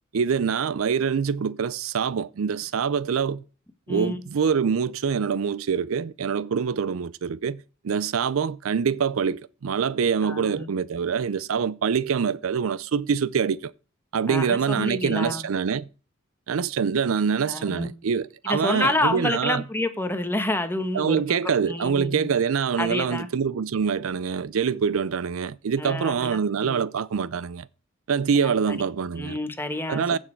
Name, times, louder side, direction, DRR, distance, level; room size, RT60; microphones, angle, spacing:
voice 1, 0.1-3.4 3.9-13.7 14.1-15.9 16.5-19.6 20.9-27.7 28.1-29.4 29.9-30.2, right 6 dB, 75° right, 0.5 m, -25 dB
voice 2, 10.2-10.7 14.3-15.4 17.5-17.9 18.5-21.2 21.7-22.3 22.8-23.3 25.8-26.3 26.6-26.8 28.4-28.8 29.1-30.2, left 2 dB, 10° left, 1.2 m, -28 dB
15.0 x 6.4 x 4.5 m
head